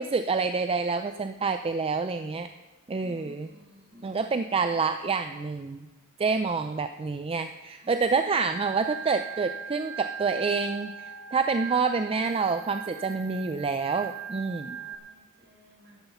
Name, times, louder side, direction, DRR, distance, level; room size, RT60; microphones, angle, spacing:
voice 1, 0.0-2.5 2.9-3.5 4.0-5.9 6.2-14.8, right 4 dB, 25° right, 9 dB, 0.4 m, -27 dB
voice 2, 3.0-4.4 7.8-8.0 14.7-16.0, left 1 dB, 60° right, -1 dB, 4.4 m, -54 dB
Organ, 8.5-15.0, right 7 dB, 75° right, 1.2 m, -39 dB
12.5 x 11.0 x 5.5 m, 1.2 s
head